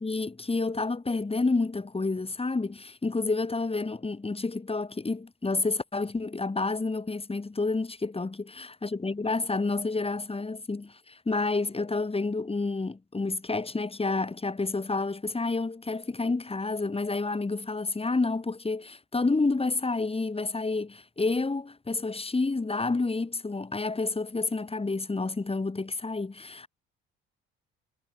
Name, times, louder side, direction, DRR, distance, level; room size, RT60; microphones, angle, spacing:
voice 1, 0.0-26.7, left 3 dB, 20° left, 3.3 m, -29 dB
hypercardioid pair, 50°, 30 cm